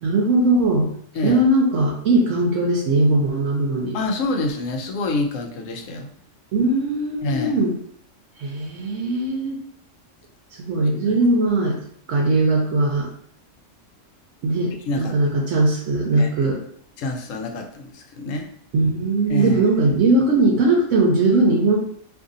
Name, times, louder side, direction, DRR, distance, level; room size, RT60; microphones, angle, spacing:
voice 1, 0.0-0.9 1.2-4.0 6.5-7.7 8.4-9.6 10.6-11.8 12.1-13.1 14.4-16.6 18.7-21.8, right 2 dB, 75° right, -1 dB, 1.0 m, -19 dB
voice 2, 3.9-6.1 7.2-7.5 11.1-11.2 14.9-15.2 16.2-16.5 17.0-18.5 19.3-19.6, left 2 dB, 85° left, 3 dB, 1.0 m, -26 dB
2.6 x 2.6 x 3.7 m, 0.63 s
omnidirectional pair, 1.3 m